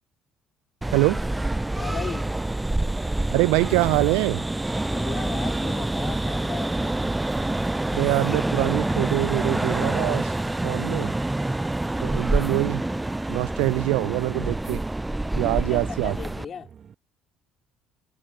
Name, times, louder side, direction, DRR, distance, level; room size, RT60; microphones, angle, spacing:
sound 1, 0.8-16.4, right 1 dB, 10° right, 0.5 m, -27 dB
sound 2, 1.3-16.9, right 7 dB, 45° right, 7.1 m, -51 dB
voice 1, 1.7-2.3 4.9-6.9 10.9-11.2 15.4-16.7, left 7 dB, 45° left, 2.8 m, -37 dB
voice 2, 3.3-4.4 7.9-10.3 10.6-11.1 12.0-12.8 13.3-14.8 15.3-16.2, right 28 dB, 80° right, 0.3 m, -24 dB
hypercardioid pair, 60°, 0 cm